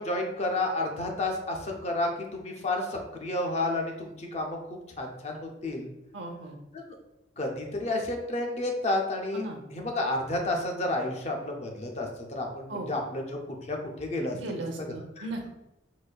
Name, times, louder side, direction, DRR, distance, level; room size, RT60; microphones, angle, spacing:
voice 1, 0.0-5.9 7.4-9.4 9.7-14.4 15.2-15.3, left 2 dB, 35° left, 2 dB, 0.5 m, -31 dB
voice 2, 6.1-6.6 9.3-9.6 12.7-12.9 14.3-15.5, right 2 dB, 80° right, 3 dB, 0.6 m, -36 dB
4.0 x 2.5 x 2.2 m, 0.89 s
head